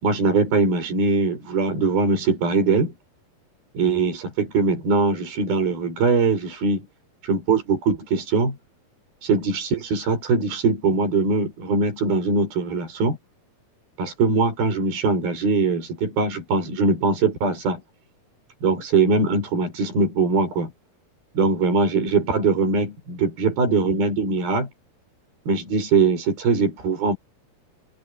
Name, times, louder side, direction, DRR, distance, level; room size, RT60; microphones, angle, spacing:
voice 1, 0.0-2.9 3.7-6.9 7.2-8.6 9.2-13.2 14.0-17.8 18.6-20.7 21.3-24.7 25.5-27.2, right 4 dB, 75° right, 7.8 m, -21 dB
omnidirectional pair, 4.3 m